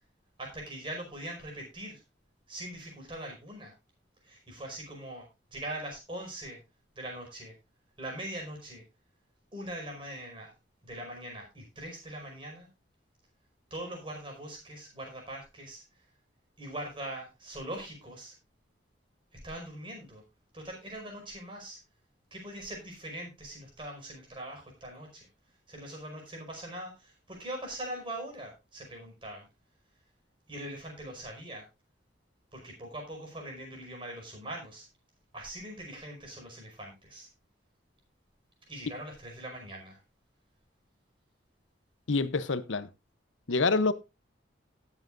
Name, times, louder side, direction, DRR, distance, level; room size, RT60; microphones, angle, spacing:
voice 1, 0.4-2.0 2.5-3.7 4.2-6.6 6.9-7.5 8.0-8.8 9.5-10.5 10.8-12.7 13.7-15.8 16.6-18.3 19.4-20.2 20.5-21.8 22.3-25.3 25.7-29.5 30.5-31.7 32.5-34.9 35.3-37.3 38.7-40.0, right 1 dB, 25° right, 5.1 m, -42 dB
voice 2, 42.1-42.9 43.5-43.9, left 3 dB, 85° left, 0.8 m, -26 dB
18.5 x 7.6 x 2.6 m
head